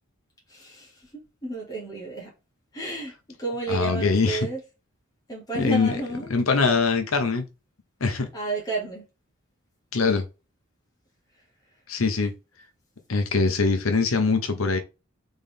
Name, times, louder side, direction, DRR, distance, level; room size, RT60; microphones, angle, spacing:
voice 1, 0.5-1.0 1.4-2.3 2.7-3.1 3.4-4.6 5.3-6.3 8.3-9.0, right 3 dB, 20° left, 1.9 m, -31 dB
voice 2, 3.7-4.5 5.6-6.0 6.3-7.5 8.0-8.3 9.9-10.3 11.9-12.3 13.1-14.8, left 4 dB, 85° left, 0.8 m, -22 dB
3.9 x 3.7 x 3.6 m
head